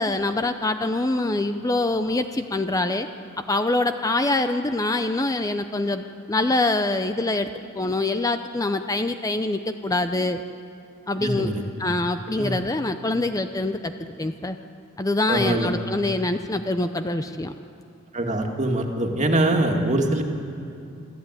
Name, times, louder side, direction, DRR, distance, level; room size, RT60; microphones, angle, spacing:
voice 1, 0.0-3.1 3.5-7.5 7.8-10.4 11.1-11.5 11.8-14.6 15.0-17.5, left 2 dB, 15° left, 8 dB, 0.6 m, -24 dB
voice 2, 11.2-11.6 12.4-12.5 15.3-15.7 18.1-20.2, right 1 dB, 35° right, 2 dB, 2.1 m, -23 dB
26.0 x 13.5 x 9.7 m, 2.6 s
head